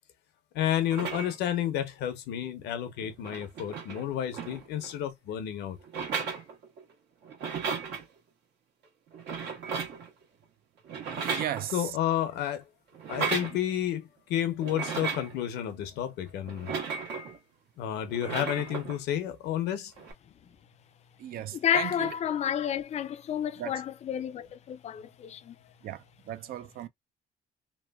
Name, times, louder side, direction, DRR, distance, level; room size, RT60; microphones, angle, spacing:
voice 1, 0.5-5.8 11.7-12.6 13.1-16.7 17.8-19.9, left 11 dB, 80° left, 0.8 m, -31 dB
sound 1, 0.8-1.5 2.7-2.8 3.0-5.0 5.8-6.9 7.2-8.0 9.1-10.1 10.9-12.0 12.9-13.6 14.6-15.4 16.5-17.4 18.1-19.0 20.0-20.1, right 5 dB, 80° right, 1.3 m, -35 dB
voice 2, 11.1-11.7 21.2-22.1 23.6-23.8 25.8-26.0 26.3-26.9, right 11 dB, 60° right, 0.5 m, -36 dB
voice 3, 21.5-25.6, left 9 dB, 40° left, 0.4 m, -30 dB
3.1 x 2.2 x 2.2 m
cardioid pair, 110°, 17 cm